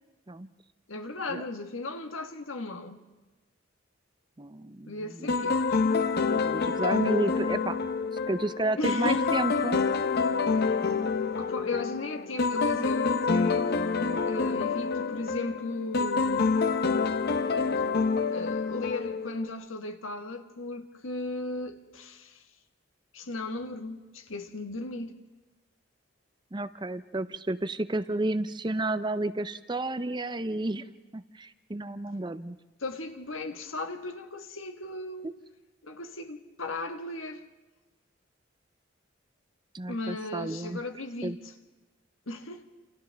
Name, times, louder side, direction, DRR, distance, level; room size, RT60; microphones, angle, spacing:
voice 1, 0.9-3.0 4.9-5.8 8.8-9.5 11.3-13.7 14.3-16.5 18.3-22.4 23.1-25.2 32.8-35.3 35.8-37.5 39.9-41.5 42.3-42.6, left 2 dB, 90° left, 1.5 m, -36 dB
voice 2, 4.4-4.9 5.2-5.3 6.3-7.8 8.3-9.8 26.5-30.8 31.1-32.6 35.2-35.3 39.7-40.8 41.2-41.4, right 2 dB, 25° right, 0.6 m, -31 dB
sound 1, 5.3-19.5, left 4 dB, 50° left, 0.9 m, -27 dB
30.0 x 28.0 x 3.5 m
head